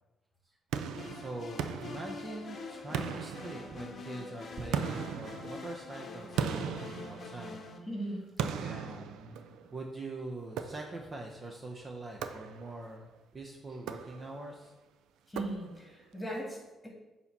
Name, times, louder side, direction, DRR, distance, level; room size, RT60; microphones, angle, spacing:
sound 1, 0.7-2.5 2.9-4.1 4.7-7.8 8.4-9.8 10.6-11.2 12.2-12.9 13.7-14.5 15.4-16.0, right 7 dB, 85° right, 0.4 m, -38 dB
sound 2, 0.9-7.8, left 4 dB, 50° left, 0.8 m, -45 dB
voice 1, 1.0-7.7 8.6-9.4 9.7-14.7, right 2 dB, 35° right, 1 dB, 0.7 m, -43 dB
voice 2, 7.9-8.3 8.6-8.9 15.3-16.9, right 1 dB, 10° left, -1 dB, 1.8 m, -39 dB
6.9 x 2.9 x 5.3 m, 1.1 s
cardioid pair, 90°, 0 cm